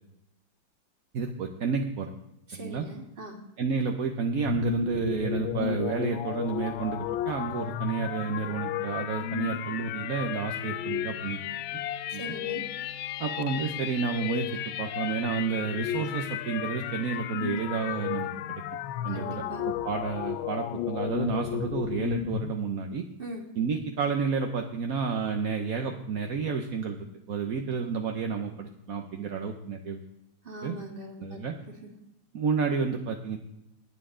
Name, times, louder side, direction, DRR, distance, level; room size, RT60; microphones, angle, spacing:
voice 1, 1.1-2.1 2.5-2.9 3.6-11.4 12.1-12.2 13.2-14.5 14.8-18.6 19.0-23.0 23.6-27.0 27.3-30.0 30.6-30.8 31.2-31.5 32.3-33.4, right 5 dB, 55° right, 3 dB, 1.0 m, -30 dB
voice 2, 2.5-3.4 12.1-12.6 19.1-19.6 23.2-23.5 30.4-31.4 31.8-31.9, right 1 dB, 25° right, 1 dB, 2.1 m, -41 dB
sound 1, 4.4-22.5, left 11 dB, 80° left, 1.4 m, -33 dB
20.0 x 7.5 x 3.8 m, 0.88 s
omnidirectional pair, 2.2 m